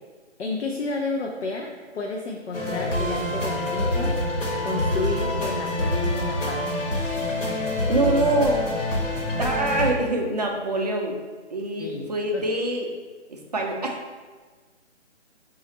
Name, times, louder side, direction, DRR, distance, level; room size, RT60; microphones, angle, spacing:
voice 1, 0.4-4.2 4.6-6.7 11.8-12.1 12.3-12.5, left 3 dB, 65° left, 0 dB, 0.5 m, -31 dB
sound 1, 2.5-9.9, left 1 dB, 85° left, 1.2 m, -26 dB
voice 2, 7.9-8.6 9.4-11.2 11.5-12.9 13.3-14.2, right 2 dB, 35° right, 1 dB, 0.4 m, -25 dB
4.0 x 2.4 x 4.0 m, 1.4 s
figure-of-eight pair, 140°, 36 cm